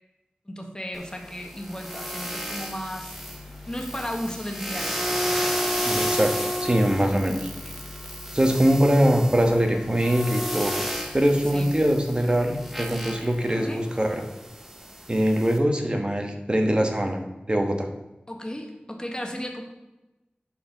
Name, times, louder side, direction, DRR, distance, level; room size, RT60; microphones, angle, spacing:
voice 1, 0.5-3.1 3.7-5.1 5.4-5.6 7.6-7.7 8.6-9.0 11.5-11.8 13.5-13.8 18.3-19.6, equal, 20° left, 2 dB, 1.7 m, -35 dB
sound 1, 0.9-15.6, equal, 5° right, 1.4 m, -32 dB
voice 2, 5.8-6.3 6.6-7.5 8.3-10.7 11.1-14.2 15.1-17.2 17.5-17.9, equal, 30° right, 3 dB, 1.5 m, -22 dB
11.0 x 4.6 x 5.3 m, 1.0 s
wide cardioid pair, 45°, 3 cm